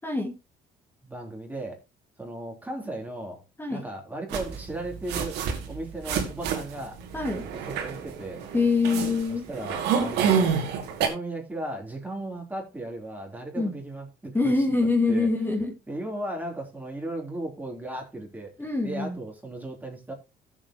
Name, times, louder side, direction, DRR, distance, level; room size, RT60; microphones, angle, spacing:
voice 1, 0.0-0.3 3.6-3.9 7.1-7.4 8.5-9.4 13.6-13.7 14.3-15.7 18.6-19.2, left 3 dB, 15° left, 2.1 m, -24 dB
voice 2, 1.1-1.8 2.2-3.4 3.7-5.4 5.7-7.0 7.5-8.4 9.3-10.5 10.9-15.3 15.9-20.1, right 1 dB, 10° right, 3.6 m, -36 dB
sound 1, 4.3-11.1, right 7 dB, 85° right, 2.3 m, -28 dB
15.0 x 7.4 x 3.0 m
cardioid pair, 110°, 17 cm